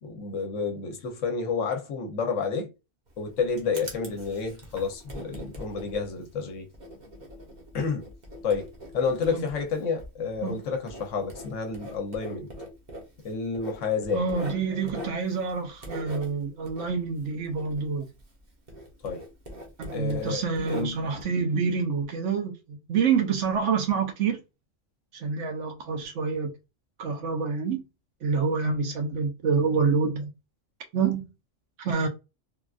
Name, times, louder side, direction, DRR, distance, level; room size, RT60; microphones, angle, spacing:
voice 1, 0.0-2.7 3.2-6.7 7.7-8.0 8.4-12.5 13.2-14.2 19.0-19.2 19.9-21.0, left 5 dB, 70° left, 1.1 m, -30 dB
Writing, 3.1-18.4 18.7-21.2, equal, 40° right, 0.9 m, -43 dB
voice 2, 14.1-18.1 19.8-24.4 25.1-26.5 27.0-27.8 28.2-30.3 30.9-31.3 31.8-32.1, right 5 dB, 70° right, 1.1 m, -27 dB
3.4 x 2.4 x 2.4 m
omnidirectional pair, 1.3 m